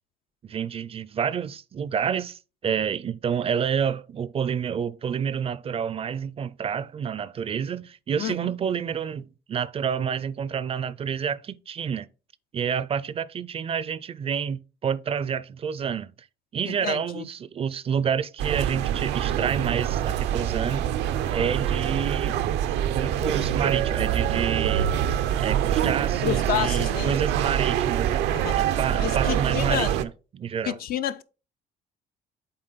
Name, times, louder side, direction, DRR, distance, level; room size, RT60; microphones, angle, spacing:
voice 1, 0.4-12.1 12.5-16.1 16.5-20.9 21.3-22.4 22.9-24.9 25.4-28.2 28.6-30.8, right 7 dB, 35° right, 0.4 m, -29 dB
voice 2, 8.2-8.5 16.7-17.3 26.2-27.2 28.3-29.9 30.6-31.2, left 10 dB, 60° left, 0.5 m, -30 dB
sound 1, 18.4-30.0, right 10 dB, 90° right, 0.6 m, -25 dB
7.7 x 4.3 x 4.0 m
cardioid pair, 110°, 17 cm